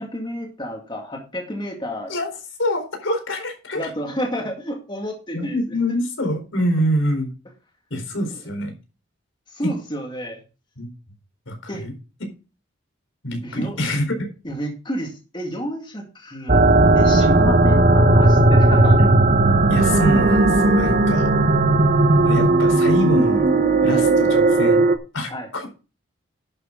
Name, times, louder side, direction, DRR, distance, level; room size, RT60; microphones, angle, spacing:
voice 1, 0.0-2.1 3.8-5.8 9.5-10.4 11.7-11.9 13.4-13.8 14.4-16.6 17.0-19.0 23.9-24.0 25.3-25.5, equal, 25° left, 2 dB, 2.1 m, -30 dB
voice 2, 2.6-3.9 5.3-7.3 7.9-8.7 9.6-9.7 10.8-10.9 11.5-11.9 13.2-14.3 19.7-21.3 22.2-23.4 23.8-24.9 25.1-25.7, equal, 80° left, 4 dB, 4.2 m, -25 dB
sound 1, 16.5-25.0, right 2 dB, 45° right, 1.1 m, -16 dB
11.0 x 8.8 x 3.8 m, 0.32 s
head